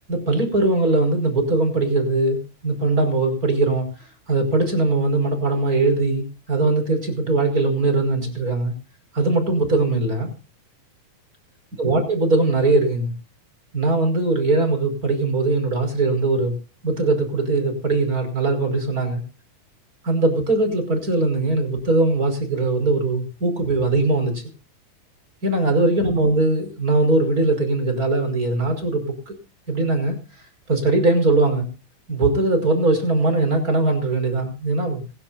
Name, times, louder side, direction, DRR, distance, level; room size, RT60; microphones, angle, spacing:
voice 1, 0.1-2.4 2.6-3.9 4.3-8.7 9.1-10.3 11.8-13.1 13.7-16.6 16.8-19.2 20.0-24.3 25.4-29.3 29.7-30.2 30.7-31.7 32.1-35.0, right 2 dB, 25° right, 6 dB, 5.6 m, -20 dB
26.5 x 13.5 x 2.6 m, 0.33 s
omnidirectional pair, 3.6 m